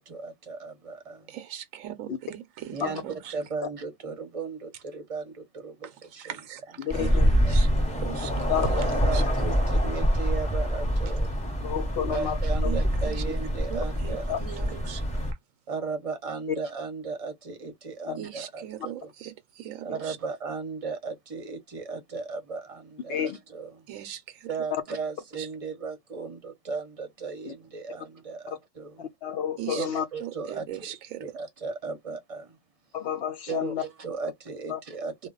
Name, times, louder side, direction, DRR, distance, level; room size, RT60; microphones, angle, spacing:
voice 1, 0.1-1.3 2.7-6.4 6.9-7.2 7.4-7.6 8.8-11.3 12.1-14.7 15.7-18.6 19.0-19.1 19.8-23.9 24.5-29.1 29.7-32.6 33.5-35.3, right 4 dB, 35° right, 0.7 m, -36 dB
voice 2, 1.3-3.3 6.2-6.6 6.9-9.2 12.6-13.2 13.7-15.0 18.2-20.2 23.9-24.5 25.4-25.5 29.6-29.9 30.2-31.2 35.2-35.3, right 11 dB, 85° right, 1.0 m, -39 dB
voice 3, 6.8-7.3 8.5-8.7 11.6-12.4 14.3-14.4 23.1-23.4 29.0-30.0 32.9-33.8 34.7-34.8, left 9 dB, 60° left, 0.7 m, -30 dB
sound 1, 6.9-15.3, equal, 5° left, 0.7 m, -25 dB
2.3 x 2.1 x 3.7 m
omnidirectional pair, 1.3 m